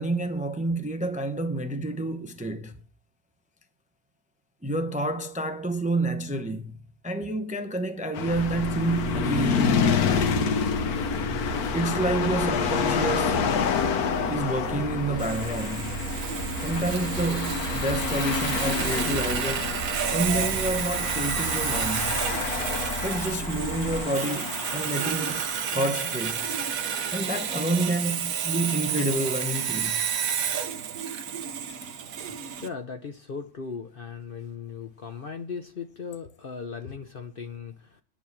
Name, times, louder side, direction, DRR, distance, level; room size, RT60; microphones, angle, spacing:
voice 1, 0.0-2.8 4.6-6.8 7.0-10.2 11.7-13.4 14.3-16.1 16.6-19.8 20.1-22.2 23.0-26.6 27.1-30.1, right 2 dB, 10° right, 0.5 m, -29 dB
sound 1, 8.1-26.6, left 7 dB, 90° left, 1.4 m, -29 dB
sound 2, 8.3-24.0, right 3 dB, 70° left, 3.0 m, -35 dB
Sawing, 15.2-32.7, right 8 dB, 70° right, 1.3 m, -31 dB
voice 2, 32.1-38.0, left 5 dB, 50° left, 0.8 m, -38 dB
9.9 x 7.3 x 7.3 m
omnidirectional pair, 1.5 m